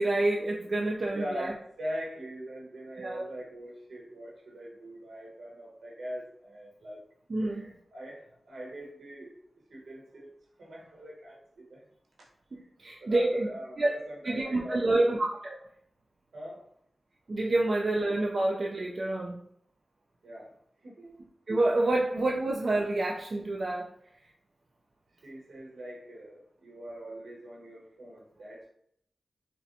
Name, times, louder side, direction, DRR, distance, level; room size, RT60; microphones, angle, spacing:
voice 1, 0.0-1.5 3.0-3.2 7.3-7.6 12.5-13.5 13.8-14.0 14.2-15.6 17.3-19.4 21.5-23.9, right 2 dB, 55° right, -2 dB, 0.4 m, -28 dB
voice 2, 1.1-7.0 7.4-9.4 9.7-10.3 10.6-11.8 12.5-12.7 13.0-15.1 16.3-16.6 20.2-21.2 25.2-28.7, equal, 80° right, -3 dB, 1.1 m, -42 dB
4.1 x 2.1 x 2.6 m, 0.67 s
cardioid pair, 50°, 0 cm